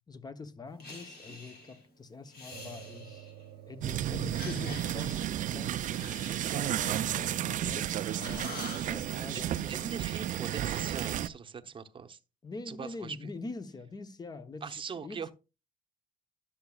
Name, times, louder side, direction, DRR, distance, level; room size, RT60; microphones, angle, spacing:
voice 1, 0.1-3.3 3.7-9.7 12.4-14.7 15.0-15.2, left 3 dB, 25° left, 0.9 m, -44 dB
Breathing, 0.8-1.8 2.3-3.5 4.2-7.8 8.1-9.0, left 2 dB, 70° left, 4.4 m, -47 dB
sound 1, 2.5-11.6, right 11 dB, 70° right, 0.9 m, -54 dB
sound 2, 3.8-11.3, right 11 dB, 50° right, 0.5 m, -32 dB
voice 2, 9.3-12.2 12.7-13.3 14.6-15.3, right 6 dB, 30° right, 0.9 m, -41 dB
11.5 x 7.1 x 2.4 m
cardioid pair, 110°, 17 cm